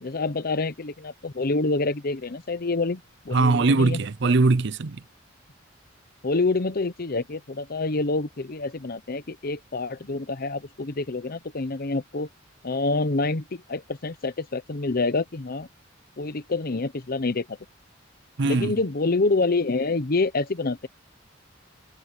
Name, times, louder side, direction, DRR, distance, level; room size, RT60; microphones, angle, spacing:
voice 1, 0.0-4.0 6.2-12.3 12.6-15.7 16.2-17.6 18.4-20.9, left 3 dB, 50° left, 0.9 m, -27 dB
voice 2, 3.3-5.0 18.4-18.7, right 3 dB, 65° right, 0.6 m, -21 dB
head